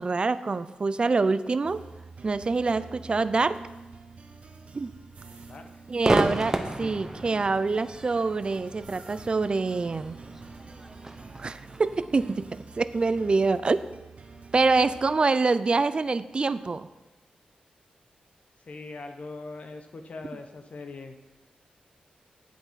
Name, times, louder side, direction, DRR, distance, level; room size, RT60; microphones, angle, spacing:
voice 1, 0.0-1.8 2.2-3.6 4.7-4.9 5.9-10.2 11.4-12.5 12.8-13.8 14.5-16.9, right 3 dB, 40° right, 14 dB, 0.5 m, -25 dB
sound 1, 1.6-15.2, right 4 dB, 55° right, 1.0 m, -48 dB
sound 2, 2.6-2.7 3.8-4.0 4.3-4.4 4.9-5.7 6.4-6.6 8.7-9.3, right 4 dB, 75° right, 1.8 m, -54 dB
voice 2, 5.5-5.8 18.6-21.2, left 3 dB, 55° left, 6 dB, 1.2 m, -41 dB
Crowd / Fireworks, 6.0-13.4, right 1 dB, 20° right, 1.0 m, -33 dB
10.5 x 8.3 x 4.1 m, 1.1 s
cardioid pair, 85°, 3 cm